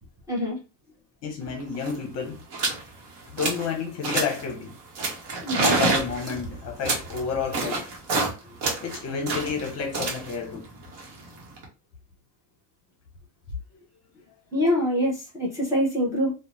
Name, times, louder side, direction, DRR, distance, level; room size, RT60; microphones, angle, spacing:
voice 1, 0.3-0.6 5.4-5.8 14.5-16.3, equal, 10° right, 0.7 m, -24 dB
voice 2, 1.2-2.4 3.3-4.8 5.6-7.9 8.8-10.7, left 6 dB, 45° left, 0.7 m, -30 dB
sound 1, 1.5-1.6 1.7-2.0 2.5-2.8 3.2-3.7 4.0-4.5 5.0-8.3 8.6-11.6, right 3 dB, 65° right, 1.0 m, -28 dB
2.6 x 2.1 x 2.9 m
cardioid pair, 165°, 37 cm